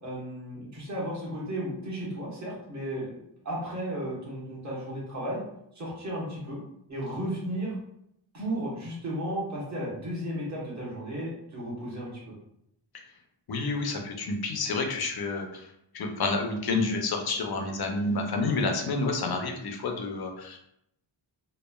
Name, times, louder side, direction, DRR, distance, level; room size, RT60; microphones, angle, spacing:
voice 1, 0.0-3.1 3.4-5.4 5.7-6.6 6.9-7.8 8.3-12.3, right 1 dB, 35° right, -6 dB, 1.0 m, -34 dB
voice 2, 13.5-15.6 15.9-20.6, left 3 dB, 50° left, 2 dB, 0.5 m, -29 dB
3.1 x 2.3 x 2.2 m, 0.76 s
wide cardioid pair, 120°, 48 cm